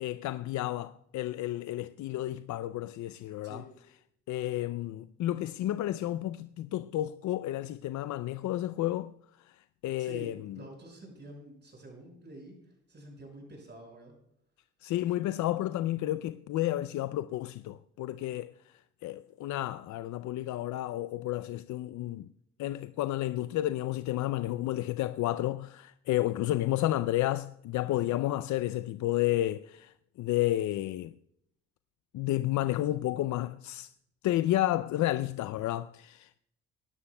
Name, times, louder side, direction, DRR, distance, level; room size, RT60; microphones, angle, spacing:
voice 1, 0.0-3.6 4.3-9.1 9.4-10.6 14.8-18.7 19.0-22.3 22.6-31.2 32.1-33.9 34.2-36.4, left 14 dB, 70° left, 0.5 m, -31 dB
voice 2, 10.0-10.3 10.6-14.1, right 2 dB, 35° right, 5.6 m, -48 dB
22.5 x 11.5 x 2.2 m
cardioid pair, 90°, 30 cm